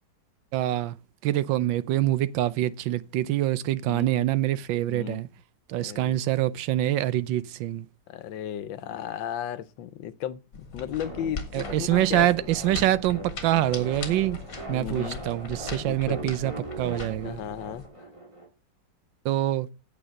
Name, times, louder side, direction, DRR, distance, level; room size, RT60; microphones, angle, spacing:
voice 1, 0.5-1.0 1.2-5.3 5.7-7.9 11.5-14.4 14.7-17.4 19.2-19.7, right 14 dB, 85° right, 1.4 m, -25 dB
voice 2, 4.9-5.2 5.7-6.2 8.1-12.3 14.7-15.2 15.9-16.5 17.2-17.8, left 10 dB, 85° left, 1.5 m, -35 dB
sound 1, 10.5-17.9, left 4 dB, 50° left, 2.0 m, -40 dB
sound 2, 11.0-18.5, right 1 dB, 15° right, 2.5 m, -40 dB
8.7 x 7.9 x 5.2 m
omnidirectional pair, 2.0 m